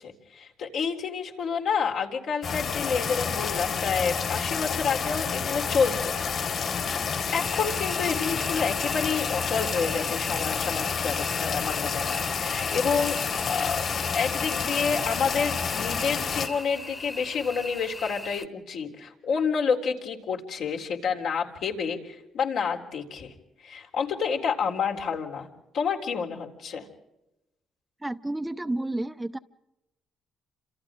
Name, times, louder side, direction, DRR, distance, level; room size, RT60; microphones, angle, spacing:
voice 1, 0.0-6.2 7.3-13.2 13.5-13.9 14.1-23.3 23.6-25.5 25.7-26.9, left 6 dB, 75° left, 2 dB, 3.8 m, -29 dB
sound 1, 2.4-16.5, left 6 dB, 60° left, 4.4 m, -29 dB
sound 2, 7.3-18.5, left 2 dB, 20° left, 1.5 m, -39 dB
voice 2, 28.0-29.4, right 1 dB, 10° right, 10 dB, 0.8 m, -31 dB
29.5 x 27.0 x 3.8 m, 0.93 s
cardioid pair, 90°, 0 cm